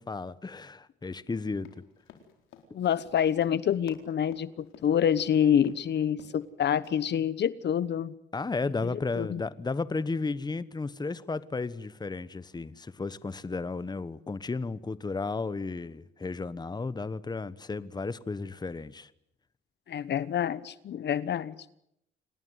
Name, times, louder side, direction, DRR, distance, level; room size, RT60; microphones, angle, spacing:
voice 1, 0.0-1.7 8.3-19.1, left 3 dB, 20° left, 1.2 m, -33 dB
Run, 1.5-5.3 5.6-5.8 6.1-6.5 6.8-6.9, left 8 dB, 85° left, 4.2 m, -52 dB
voice 2, 2.7-8.1 8.8-8.9 9.1-9.4 19.9-21.5, left 9 dB, 60° left, 1.1 m, -27 dB
27.5 x 19.5 x 9.5 m
cardioid pair, 90°, 20 cm